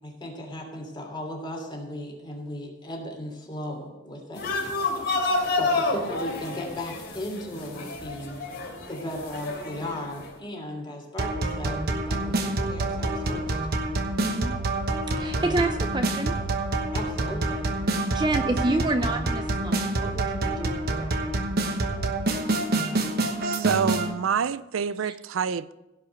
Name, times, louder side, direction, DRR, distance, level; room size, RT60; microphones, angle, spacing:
voice 1, 0.0-4.4 5.6-8.4 8.9-13.6 16.9-17.6, left 1 dB, 25° left, 3.0 m, -36 dB
sound 1, 4.3-10.3, left 3 dB, 55° left, 3.0 m, -29 dB
sound 2, 11.2-24.1, right 2 dB, 55° right, 1.1 m, -27 dB
voice 2, 14.2-14.5 15.1-16.4 17.9-21.2 25.0-25.1, right 2 dB, 20° right, 0.6 m, -29 dB
voice 3, 23.4-25.8, right 7 dB, 85° right, 0.5 m, -27 dB
16.0 x 5.5 x 6.6 m
head